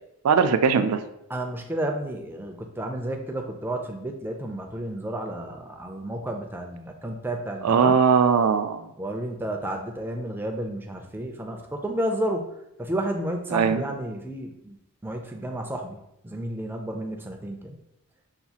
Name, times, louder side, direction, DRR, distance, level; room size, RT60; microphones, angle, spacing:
voice 1, 0.2-1.0 7.6-8.9 13.5-13.8, right 6 dB, 85° right, 9 dB, 0.4 m, -20 dB
voice 2, 1.3-8.0 9.0-12.5 12.8-14.8 15.0-16.0 16.2-17.7, right 1 dB, 10° right, 3 dB, 0.4 m, -31 dB
5.7 x 2.4 x 2.8 m, 0.81 s
head